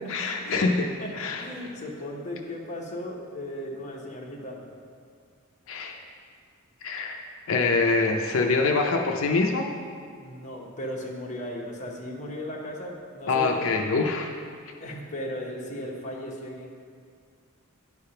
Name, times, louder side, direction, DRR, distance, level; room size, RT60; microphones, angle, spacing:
voice 1, 0.1-0.9 1.2-1.4 5.7-6.0 6.8-7.2 7.5-9.7 13.3-14.3, left 3 dB, 65° left, 2 dB, 0.5 m, -24 dB
voice 2, 1.0-4.7 10.1-13.7 14.8-16.7, left 1 dB, 35° left, -2 dB, 1.1 m, -36 dB
10.0 x 3.5 x 5.6 m, 2.1 s
head